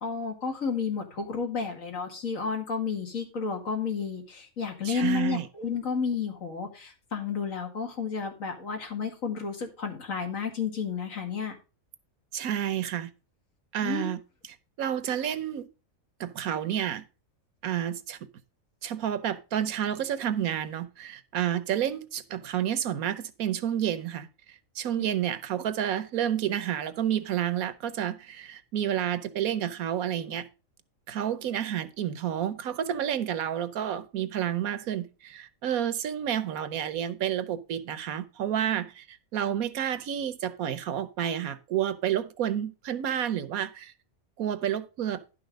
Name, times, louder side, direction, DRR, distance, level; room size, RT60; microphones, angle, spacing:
voice 1, 0.0-11.5 13.8-14.1, left 5 dB, 70° left, 2.4 m, -31 dB
voice 2, 4.8-5.5 12.3-13.1 13.7-15.7 16.2-17.0 17.6-18.2 18.8-24.3 24.8-30.5 31.1-43.9 44.4-45.2, right 10 dB, 85° right, 1.3 m, -30 dB
11.0 x 5.8 x 5.1 m
omnidirectional pair, 1.5 m